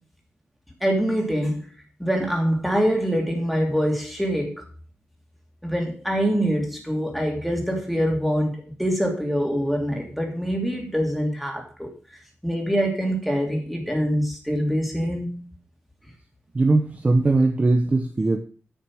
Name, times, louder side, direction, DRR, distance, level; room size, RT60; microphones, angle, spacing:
voice 1, 0.8-1.6 2.0-4.6 5.6-11.9 12.4-15.5, equal, ahead, 1 dB, 2.9 m, -24 dB
voice 2, 16.5-18.4, right 2 dB, 30° right, 6 dB, 0.9 m, -20 dB
9.8 x 6.5 x 6.2 m, 0.40 s
wide cardioid pair, 120°, 4 cm